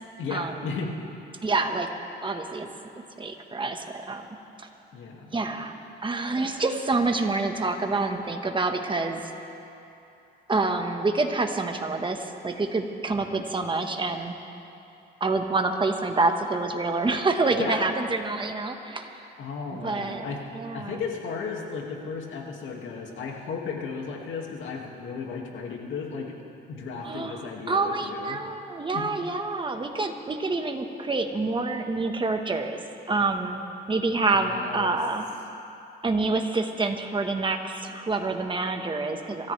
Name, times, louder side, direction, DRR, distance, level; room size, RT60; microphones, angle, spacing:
voice 1, 0.2-0.9 4.9-5.3 13.1-13.4 17.6-17.8 19.4-20.4 20.7-26.3 26.7-28.4 28.9-29.0 34.3-34.9, left 5 dB, 75° left, 0 dB, 2.2 m, -35 dB
voice 2, 1.4-1.9 2.2-2.7 3.2-4.3 4.6-4.7 5.3-5.7 6.0-9.3 10.5-14.3 15.2-19.1 19.7-20.3 20.5-21.0 27.0-32.8 33.1-33.6 33.9-35.2 36.0-39.5, right 3 dB, 25° right, 5 dB, 1.4 m, -27 dB
25.5 x 14.0 x 3.4 m, 2.8 s
cardioid pair, 90°, 20 cm